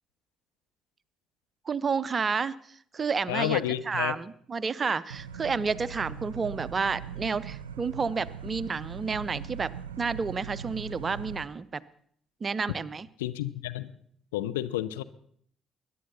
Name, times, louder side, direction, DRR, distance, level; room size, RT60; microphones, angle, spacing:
voice 1, 1.7-2.6 2.9-3.6 3.9-9.7 10.0-11.8 12.4-13.1, right 5 dB, 35° right, 19 dB, 0.5 m, -30 dB
voice 2, 3.3-4.2 13.2-13.9 14.3-15.0, left 14 dB, 75° left, 11 dB, 0.5 m, -30 dB
sound 1, 5.1-11.5, right 8 dB, 80° right, 0.5 m, -40 dB
21.5 x 11.0 x 4.2 m, 0.63 s
figure-of-eight pair, 45°, 0 cm